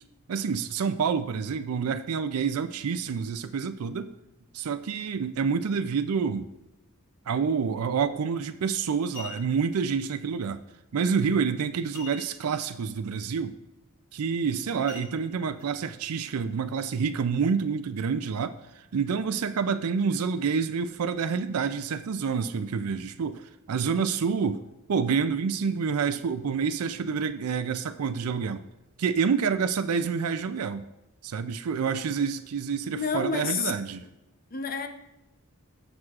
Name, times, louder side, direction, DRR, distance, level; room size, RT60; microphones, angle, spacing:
voice 1, 0.3-4.1 4.5-6.5 7.3-10.6 10.9-13.6 14.1-24.6 24.9-28.6 29.0-30.8 31.2-34.0, right 6 dB, 90° right, 10 dB, 0.4 m, -28 dB
sound 1, 8.4-8.5 8.9-9.7 11.9-12.6 12.9-13.0 13.5-13.8 14.9-15.7 16.2-16.3, left 6 dB, 60° left, 2.3 m, -45 dB
voice 2, 32.9-33.7 34.5-34.9, left 5 dB, 40° left, 6 dB, 0.8 m, -29 dB
16.0 x 6.1 x 2.4 m, 0.96 s
head